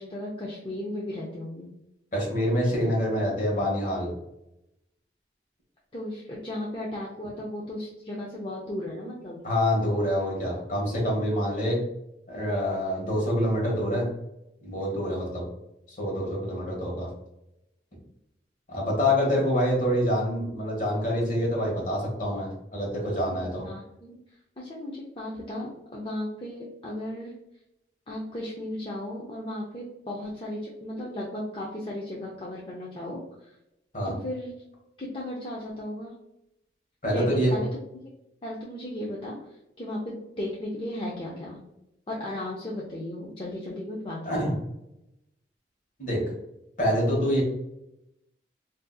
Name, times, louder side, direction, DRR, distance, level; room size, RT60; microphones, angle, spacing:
voice 1, 0.0-1.7 5.9-9.4 23.3-24.2 24.6-27.3 28.1-33.5 34.0-34.6 35.0-36.1 37.1-37.7 38.4-39.4 39.8-41.6 42.1-44.4, left 1 dB, 30° left, -4 dB, 0.5 m, -35 dB
voice 2, 2.1-4.1 9.4-11.8 12.3-14.1 14.6-15.4 15.9-17.1 18.7-23.7 33.9-34.2 37.0-37.6 44.2-44.5 46.0-46.2 46.8-47.4, equal, 45° left, -2 dB, 1.2 m, -26 dB
3.8 x 2.6 x 2.3 m, 0.86 s
head